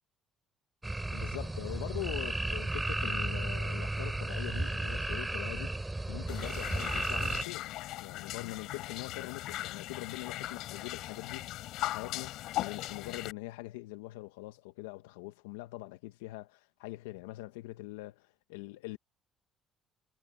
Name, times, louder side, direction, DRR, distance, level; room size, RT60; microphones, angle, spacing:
sound 1, 0.8-7.4, right 2 dB, 15° right, 4.5 m, -34 dB
voice 1, 1.1-7.7 8.0-19.0, left 19 dB, 90° left, 1.9 m, -43 dB
sound 2, 6.3-13.3, left 15 dB, 70° left, 6.5 m, -39 dB
hypercardioid pair, 65°, 0 cm